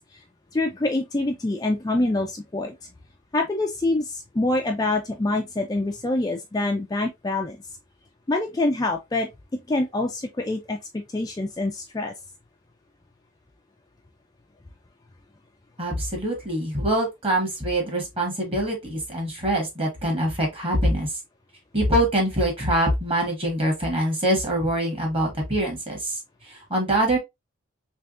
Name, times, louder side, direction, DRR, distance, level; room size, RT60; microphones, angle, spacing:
voice 1, 0.5-2.7 3.3-7.6 8.3-12.1, left 2 dB, 20° left, 0.4 m, -26 dB
voice 2, 15.8-21.1 21.7-26.2 26.5-27.2, right 1 dB, 25° right, 1.4 m, -24 dB
3.5 x 3.3 x 2.4 m
head